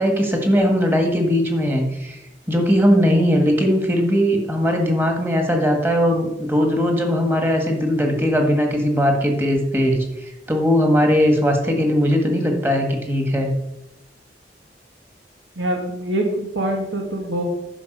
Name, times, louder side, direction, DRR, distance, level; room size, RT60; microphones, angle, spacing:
voice 1, 0.0-2.2 2.5-10.0 10.5-13.5, equal, 10° right, 3 dB, 1.6 m, -19 dB
voice 2, 15.6-17.4, right 1 dB, 90° right, 0 dB, 1.8 m, -24 dB
10.0 x 5.6 x 6.7 m, 0.89 s
head